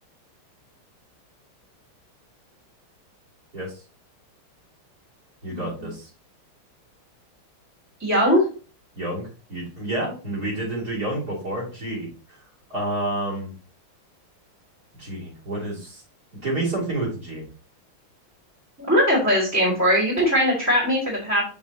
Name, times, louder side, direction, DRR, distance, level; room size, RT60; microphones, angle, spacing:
voice 1, 5.4-6.1 9.0-12.1 12.7-13.5 15.0-16.0 16.4-17.5, right 1 dB, 45° right, -4 dB, 3.8 m, -29 dB
voice 2, 8.0-8.4 18.9-21.4, equal, 5° right, -5 dB, 2.4 m, -20 dB
6.4 x 5.5 x 2.9 m, 0.35 s
omnidirectional pair, 2.3 m